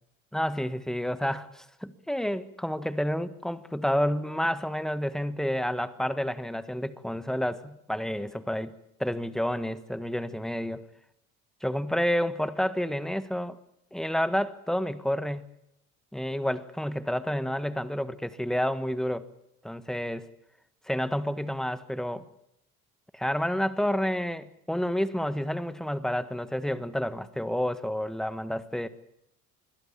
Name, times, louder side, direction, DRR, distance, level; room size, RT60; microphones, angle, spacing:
voice 1, 0.3-8.7 9.0-10.8 11.6-13.6 13.9-15.5 16.1-19.3 19.6-20.3 20.9-22.3 23.1-28.9, equal, ahead, 15 dB, 1.6 m, -29 dB
26.5 x 22.0 x 7.3 m, 0.80 s
figure-of-eight pair, 60°, 44 cm